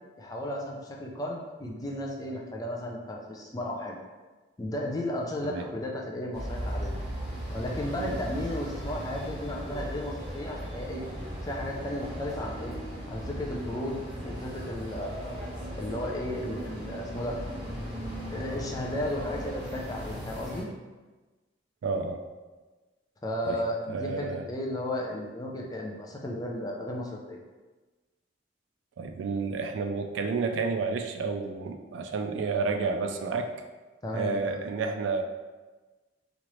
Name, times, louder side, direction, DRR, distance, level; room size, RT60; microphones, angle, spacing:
voice 1, 0.2-4.0 4.6-7.0 7.5-11.0 11.4-12.8 13.1-15.3 15.7-17.4 18.3-20.7 23.2-27.4 34.0-34.6, left 1 dB, 20° left, 0 dB, 0.4 m, -34 dB
sound 1, 6.3-20.6, equal, 60° right, 1.2 m, -37 dB
voice 2, 21.8-22.2 23.5-23.6 23.9-24.5 29.0-33.5 34.1-35.2, right 4 dB, 80° right, 6 dB, 0.3 m, -30 dB
2.9 x 2.5 x 3.0 m, 1.2 s
head